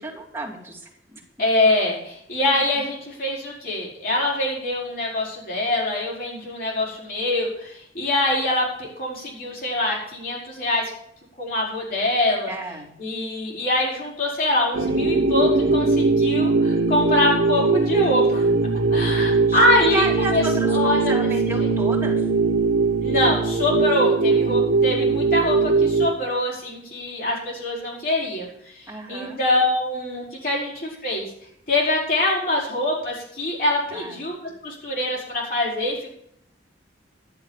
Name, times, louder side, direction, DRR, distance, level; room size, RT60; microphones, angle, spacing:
voice 1, 0.0-1.2 2.6-2.8 12.5-13.0 19.5-22.2 28.9-29.4 33.9-34.2, right 2 dB, 15° right, -4 dB, 3.2 m, -32 dB
voice 2, 1.4-10.8 11.4-12.5 13.0-18.5 18.9-20.1 20.3-20.4 20.7-21.1 21.6-21.7 23.0-31.3 31.7-36.1, left 1 dB, 50° left, -3 dB, 5.3 m, -24 dB
sound 1, 14.7-26.1, right 3 dB, 90° right, 1.0 m, -20 dB
12.0 x 7.7 x 7.4 m, 0.74 s
head